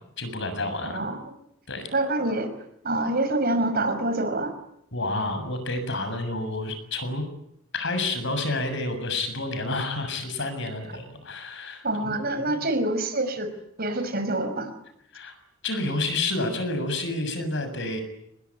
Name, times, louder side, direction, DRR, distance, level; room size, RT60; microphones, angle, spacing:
voice 1, 0.2-1.0 1.7-1.9 4.9-7.2 7.7-12.1 12.4-12.6 15.1-15.4 15.6-18.0, left 2 dB, 60° left, 9 dB, 7.0 m, -29 dB
voice 2, 1.9-2.5 2.8-4.5 11.8-13.5 13.8-14.7, right 2 dB, 45° right, 9 dB, 5.6 m, -26 dB
28.5 x 21.0 x 9.9 m, 0.78 s
head